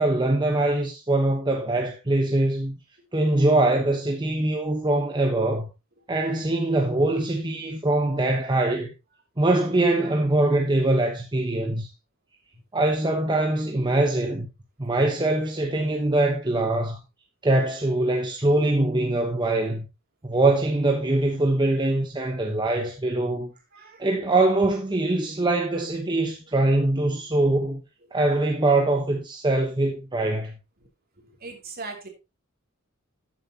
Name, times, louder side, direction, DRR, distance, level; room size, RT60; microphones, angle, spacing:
voice 1, 0.0-2.8 3.1-5.7 6.1-8.9 9.4-11.9 12.7-14.5 14.8-17.0 17.4-19.9 20.2-23.5 24.0-27.8 28.1-30.6, right 2 dB, 20° right, 1.0 m, -23 dB
voice 2, 31.4-32.1, right 3 dB, 45° right, 2.7 m, -37 dB
13.0 x 7.4 x 2.9 m
head